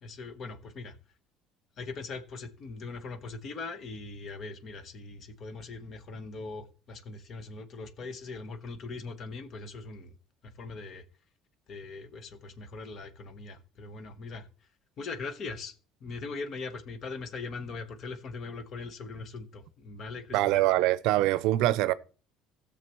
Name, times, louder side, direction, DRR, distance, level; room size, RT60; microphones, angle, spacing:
voice 1, 0.0-1.0 1.8-10.1 10.4-11.0 11.7-14.5 15.0-15.7 16.0-20.6, left 4 dB, 45° left, 1.1 m, -40 dB
voice 2, 20.3-21.9, right 15 dB, 75° right, 0.5 m, -24 dB
16.0 x 6.7 x 3.1 m
cardioid pair, 125°, 0 cm